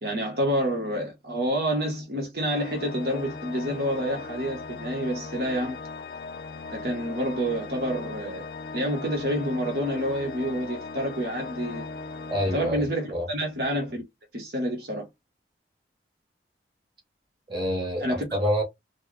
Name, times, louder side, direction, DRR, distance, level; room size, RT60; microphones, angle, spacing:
voice 1, 0.0-5.8 6.7-8.4 8.7-11.8 12.5-14.0 14.3-15.1 18.0-18.3, equal, 60° right, 1.2 m, -28 dB
Organ, 2.5-13.4, left 3 dB, 60° left, 0.5 m, -38 dB
voice 2, 12.3-13.3 17.5-18.6, equal, 30° right, 1.8 m, -27 dB
4.5 x 2.2 x 3.2 m
head